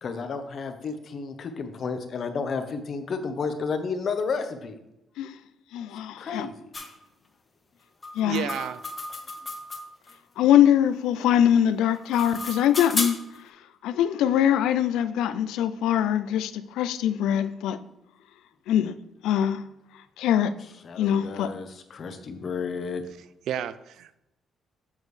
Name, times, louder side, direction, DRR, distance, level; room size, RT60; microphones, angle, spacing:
voice 1, 0.0-4.8 6.2-6.5 20.8-23.0, left 5 dB, 55° left, 0.8 m, -32 dB
voice 2, 5.7-6.5 8.1-8.5 10.4-13.2 13.8-17.8 18.7-18.9 19.2-19.6 20.2-20.5 21.0-21.5, left 10 dB, 90° left, 0.4 m, -22 dB
sound 1, 6.7-6.9 8.0-10.1 11.8-13.4, left 3 dB, 25° left, 1.1 m, -33 dB
voice 3, 8.2-8.8 23.5-24.2, right 10 dB, 80° right, 0.4 m, -31 dB
7.2 x 6.2 x 3.2 m
cardioid pair, 90°, 0 cm